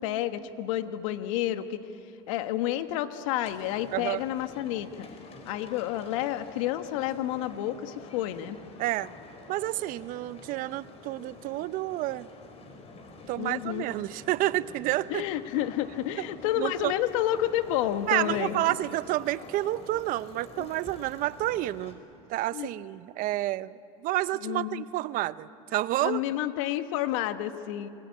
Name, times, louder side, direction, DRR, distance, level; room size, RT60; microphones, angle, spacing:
voice 1, 0.0-1.8 2.3-5.1 5.4-8.6 13.3-13.8 15.1-18.7 22.5-22.7 24.4-24.8 26.0-27.9, left 12 dB, 75° left, 9 dB, 1.5 m, -30 dB
sound 1, 3.4-21.9, left 3 dB, 35° left, 5.1 m, -48 dB
voice 2, 3.9-4.2 8.8-9.1 9.5-12.3 13.3-15.2 16.6-16.9 18.1-22.0 22.3-26.2, right 16 dB, 55° right, 16 dB, 0.7 m, -29 dB
28.5 x 20.5 x 8.6 m, 2.7 s
supercardioid pair, 105°, 17 cm